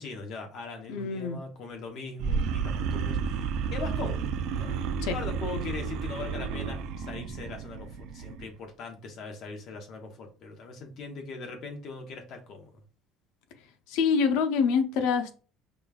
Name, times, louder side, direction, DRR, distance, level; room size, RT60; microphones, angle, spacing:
voice 1, 0.0-4.7 5.1-12.7, left 3 dB, 55° left, 3 dB, 0.8 m, -40 dB
voice 2, 0.9-1.4 5.0-5.2 13.9-15.3, left 6 dB, 85° left, 8 dB, 0.5 m, -25 dB
sound 1, 2.2-8.5, right 6 dB, 65° right, 0.3 m, -31 dB
5.0 x 2.3 x 2.3 m, 0.37 s
cardioid pair, 145°, 0 cm